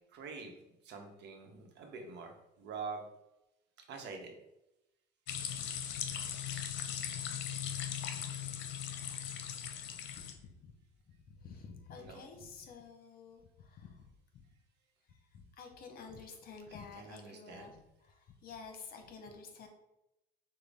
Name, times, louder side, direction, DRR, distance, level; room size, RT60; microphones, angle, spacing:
voice 1, 0.1-0.5 0.8-3.1 3.8-4.3 12.0-12.2 17.0-17.8, right 4 dB, 65° right, 2 dB, 1.1 m, -45 dB
sound 1, 5.3-10.3, left 9 dB, 70° left, 0.7 m, -39 dB
voice 2, 10.2-10.8 11.1-14.4 15.0-19.7, left 5 dB, 50° left, 5 dB, 1.0 m, -51 dB
6.2 x 2.4 x 3.5 m, 0.90 s
cardioid pair, 100°, 19 cm